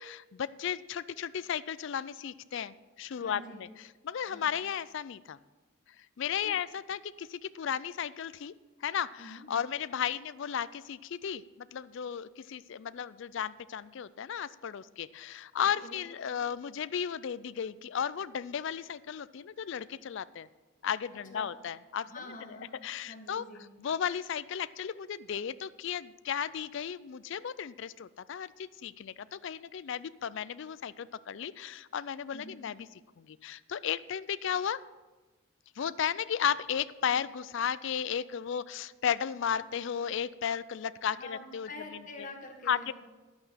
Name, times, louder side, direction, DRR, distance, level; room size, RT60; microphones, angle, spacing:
voice 1, 0.0-3.4 4.0-5.4 6.2-8.5 8.8-20.5 20.8-22.1 22.8-23.4 23.8-32.8 33.2-34.8 35.8-41.7 42.7-42.9, left 8 dB, 55° left, 17 dB, 0.3 m, -34 dB
voice 2, 3.2-3.6 4.2-4.5 6.4-6.6 9.2-9.5 15.8-16.0 21.3-21.5 22.0-22.7 23.0-23.6 32.3-32.6 41.1-42.9, left 2 dB, 35° left, 2 dB, 1.6 m, -46 dB
11.0 x 8.6 x 5.7 m, 1.2 s
head